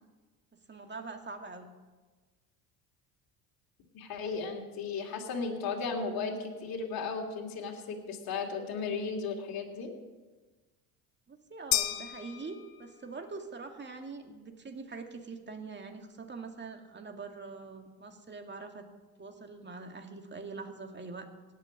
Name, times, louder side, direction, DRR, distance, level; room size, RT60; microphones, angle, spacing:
voice 1, 0.7-1.7 11.3-18.9 19.2-21.3, right 4 dB, 25° right, 5 dB, 2.3 m, -43 dB
voice 2, 3.9-9.9, left 4 dB, 50° left, 0 dB, 3.0 m, -35 dB
sound 1, 11.7-13.2, left 15 dB, 70° left, 1.1 m, -33 dB
17.5 x 7.0 x 9.6 m, 1.3 s
supercardioid pair, 85°, 44 cm